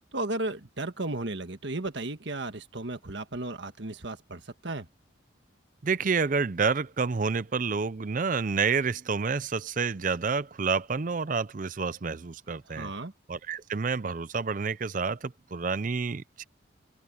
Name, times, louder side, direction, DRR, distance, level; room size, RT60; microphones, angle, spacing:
voice 1, 0.1-4.9 12.7-13.1, right 2 dB, 60° right, 1.6 m, -34 dB
voice 2, 5.8-12.9 13.3-16.4, right 5 dB, 40° right, 0.5 m, -29 dB
open air
head